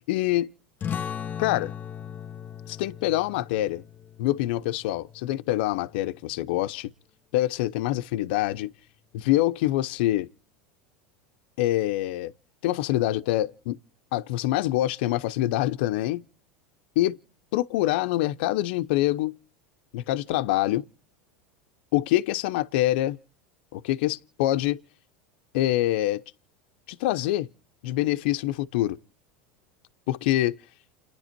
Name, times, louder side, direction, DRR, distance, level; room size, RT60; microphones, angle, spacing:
voice 1, 0.1-0.5 1.4-1.7 2.7-3.8 4.2-6.9 7.3-8.7 9.1-10.3 11.6-12.3 12.6-13.8 14.1-16.2 17.0-17.2 17.5-19.4 19.9-20.8 21.9-23.2 23.7-24.8 25.5-26.2 26.9-27.5 27.8-29.0 30.1-30.6, left 15 dB, 70° left, 0.7 m, -25 dB
sound 1, 0.8-6.0, left 8 dB, 35° left, 1.1 m, -38 dB
29.5 x 10.5 x 4.4 m
supercardioid pair, 105°, 6 cm